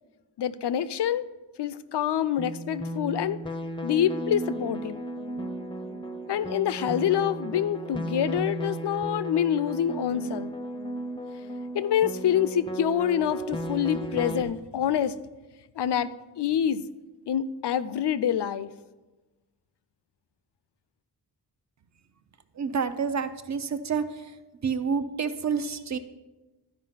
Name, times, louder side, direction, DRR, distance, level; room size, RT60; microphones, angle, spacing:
voice 1, 0.4-1.2 1.6-3.4 3.8-5.0 6.3-10.5 11.7-15.1 15.8-16.1 16.4-16.9 17.3-18.7, left 9 dB, 80° left, 15 dB, 0.5 m, -26 dB
sound 1, 2.4-14.4, right 1 dB, 10° left, 0.5 m, -35 dB
voice 2, 22.5-24.4 24.6-26.0, right 6 dB, 45° right, 10 dB, 0.6 m, -29 dB
12.5 x 5.1 x 5.6 m, 1.1 s
wide cardioid pair, 170°, 41 cm